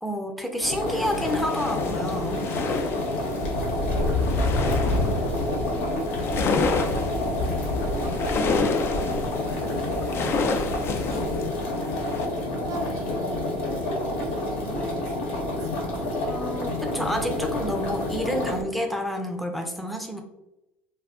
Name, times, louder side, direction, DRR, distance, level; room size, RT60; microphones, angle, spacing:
voice 1, 0.0-2.4 11.1-11.3 16.2-20.2, equal, ahead, 3 dB, 0.6 m, -29 dB
sound 1, 0.6-18.6, left 1 dB, 85° left, 1.0 m, -29 dB
sound 2, 0.9-12.3, left 4 dB, 40° left, 0.4 m, -31 dB
sound 3, 3.4-11.5, left 2 dB, 65° left, 0.9 m, -30 dB
voice 2, 4.1-7.4 7.9-11.0 12.1-15.9, right 4 dB, 60° right, 4 dB, 0.6 m, -42 dB
2.4 x 2.3 x 3.5 m, 0.92 s
supercardioid pair, 85°, 6 cm